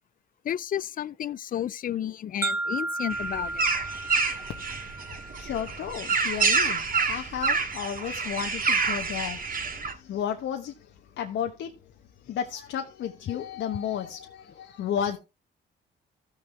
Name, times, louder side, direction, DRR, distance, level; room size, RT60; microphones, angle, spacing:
voice 1, 0.4-3.7 13.3-13.4, left 10 dB, 45° left, 0.4 m, -32 dB
sound 1, 2.4-6.4, right 2 dB, 10° right, 1.8 m, -34 dB
sound 2, 3.1-9.9, right 5 dB, 45° right, 2.4 m, -27 dB
voice 2, 5.4-9.4 9.9-10.7 11.2-11.7 12.3-15.2, left 9 dB, 75° left, 1.1 m, -32 dB
14.5 x 6.7 x 3.4 m
cardioid pair, 90°, 20 cm